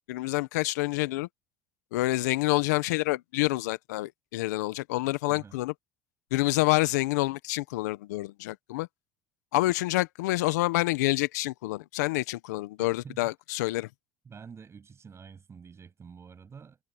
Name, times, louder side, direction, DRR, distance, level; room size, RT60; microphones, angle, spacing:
voice 1, 0.1-1.3 1.9-5.7 6.3-8.9 9.5-13.9, left 20 dB, 85° left, 1.3 m, -27 dB
voice 2, 12.8-13.3 14.2-16.8, right 6 dB, 30° right, 7.8 m, -48 dB
supercardioid pair, 85°, 9 cm